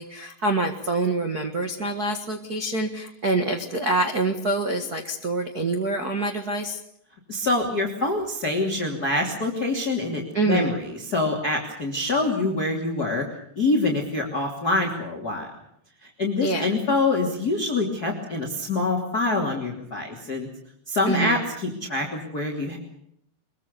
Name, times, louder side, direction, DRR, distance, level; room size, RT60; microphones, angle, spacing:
voice 1, 0.0-6.8 10.3-10.7 16.4-16.6 21.0-21.4, right 2 dB, 80° right, 6 dB, 0.8 m, -26 dB
voice 2, 7.3-10.8 11.1-13.2 13.6-15.5 16.0-20.5 20.9-22.8, left 2 dB, 25° left, 2 dB, 2.9 m, -25 dB
24.0 x 22.5 x 6.9 m, 0.71 s
omnidirectional pair, 5.0 m